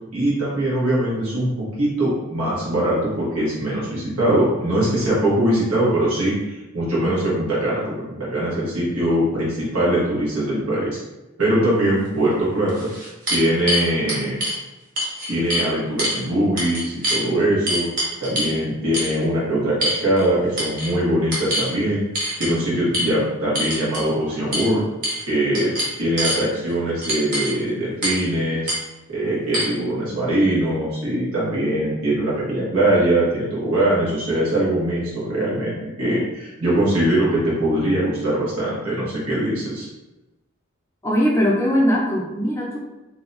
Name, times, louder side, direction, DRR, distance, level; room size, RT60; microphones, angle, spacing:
voice 1, 0.0-11.0 11.4-12.9 13.3-14.4 15.3-17.9 18.2-22.0 22.4-24.8 25.3-28.7 29.1-39.9, right 1 dB, 85° right, -7 dB, 1.1 m, -22 dB
sound 1, 12.0-12.1 12.7-14.6 15.0-15.7 16.0-16.2 16.6-17.2 17.7-18.6 18.9-19.1 19.8-20.3 20.6-20.9 21.3-21.7 22.1-22.5 22.9-23.1 23.5-24.1 24.5-24.7 25.0-25.3 25.5-26.4 27.0-27.5 28.0-28.2 28.7-28.8 29.5-29.6, equal, 40° right, 0.9 m, -24 dB
voice 2, 41.0-42.8, equal, 10° left, -3 dB, 0.5 m, -20 dB
2.7 x 2.2 x 3.8 m, 1.0 s
head